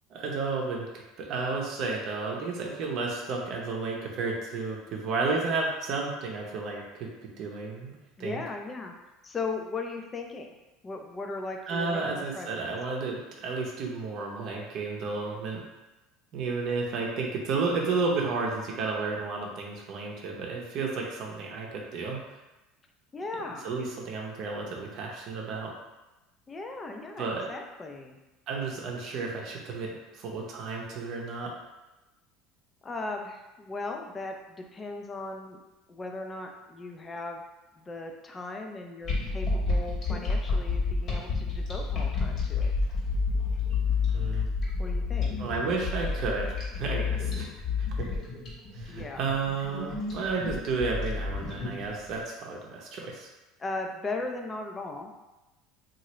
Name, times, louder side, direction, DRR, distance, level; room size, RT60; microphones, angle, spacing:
voice 1, 0.1-8.4 11.7-15.7 16.3-22.2 23.6-25.7 27.2-27.5 28.5-31.6 44.1-44.5 45.4-47.5 47.8-48.1 48.7-53.3, right 4 dB, 55° right, -1 dB, 0.7 m, -32 dB
voice 2, 8.2-8.9 9.2-10.5 10.8-12.7 23.1-23.7 26.5-28.2 32.8-35.6 35.9-37.4 37.8-42.7 44.8-45.3 48.9-49.2 53.6-55.1, left 3 dB, 25° left, 3 dB, 0.4 m, -37 dB
sound 1, 39.0-52.1, left 4 dB, 45° left, 1.2 m, -29 dB
2.8 x 2.5 x 3.0 m, 1.1 s
supercardioid pair, 100°, 0 cm